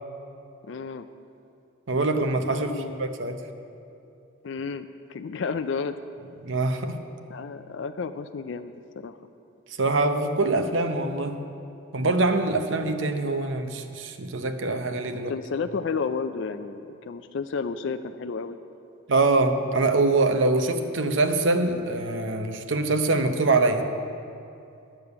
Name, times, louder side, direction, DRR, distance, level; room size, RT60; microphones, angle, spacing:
voice 1, 0.7-1.1 2.3-3.1 4.4-6.0 7.3-9.2 15.1-18.6, left 5 dB, 65° left, 9 dB, 0.4 m, -32 dB
voice 2, 1.9-3.4 6.4-6.9 9.8-11.4 11.9-15.3 19.1-23.9, right 3 dB, 70° right, 7 dB, 0.8 m, -24 dB
10.0 x 6.9 x 8.1 m, 2.6 s
head